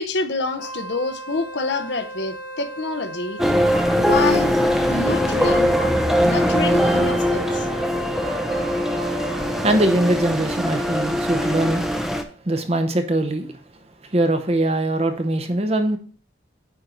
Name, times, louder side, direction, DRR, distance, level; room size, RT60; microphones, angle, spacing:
voice 1, 0.0-3.4 3.9-4.5 4.9-5.7 6.2-7.7, left 3 dB, 70° left, 7 dB, 0.8 m, -27 dB
Wind instrument woodwind instrument, 0.5-9.8, right 1 dB, 50° left, 1.5 m, -36 dB
sound 1, 3.4-12.2, equal, ahead, 0.6 m, -21 dB
voice 2, 9.6-11.8 12.4-13.6 14.0-16.0, right 1 dB, 35° right, 7 dB, 0.8 m, -21 dB
9.5 x 4.5 x 3.8 m, 0.41 s
head